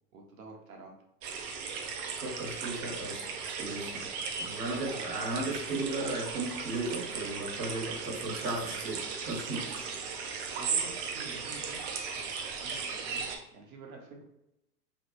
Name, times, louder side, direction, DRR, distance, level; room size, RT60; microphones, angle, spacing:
voice 1, 0.1-1.0 8.4-8.7 9.3-9.8 10.0-12.0 12.6-14.2, right 3 dB, 60° right, 1 dB, 1.0 m, -49 dB
sound 1, 1.2-13.4, right 5 dB, 45° right, 0.6 m, -37 dB
voice 2, 2.2-4.1 4.4-9.8, right 2 dB, 85° right, -5 dB, 1.3 m, -36 dB
3.2 x 2.3 x 3.0 m, 0.87 s
hypercardioid pair, 105°, 48 cm